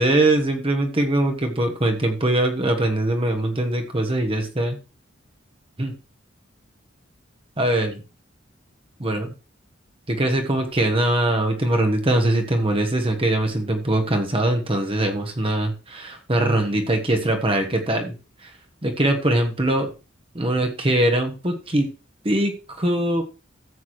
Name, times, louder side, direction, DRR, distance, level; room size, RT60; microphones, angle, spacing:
voice 1, 0.0-4.8 5.8-5.9 7.6-8.0 9.0-9.3 10.1-18.1 18.4-18.5 18.8-19.9 20.3-21.9 22.2-23.2, right 1 dB, 30° right, 4 dB, 1.2 m, -22 dB
14.0 x 8.3 x 3.1 m, 0.32 s
head